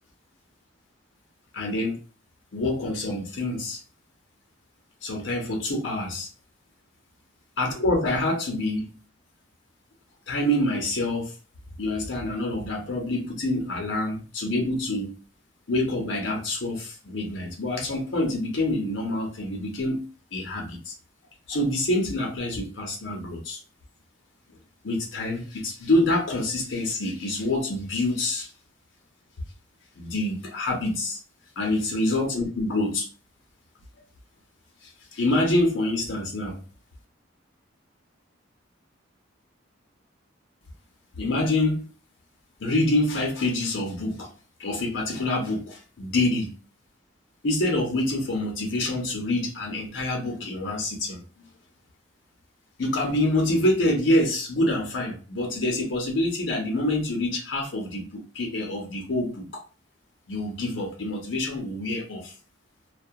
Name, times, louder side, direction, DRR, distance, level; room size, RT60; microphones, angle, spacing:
voice 1, 1.5-2.0 2.5-3.8 5.0-6.3 7.6-8.9 10.3-11.3 11.8-15.1 15.7-20.9 21.5-23.6 24.8-28.5 30.0-31.2 31.6-33.1 34.8-36.6 41.1-41.9 42.6-44.3 44.6-46.5 47.4-51.2 52.8-59.6 60.3-62.3, left 1 dB, 70° left, 0.6 m, -26 dB
2.2 x 2.1 x 2.7 m
head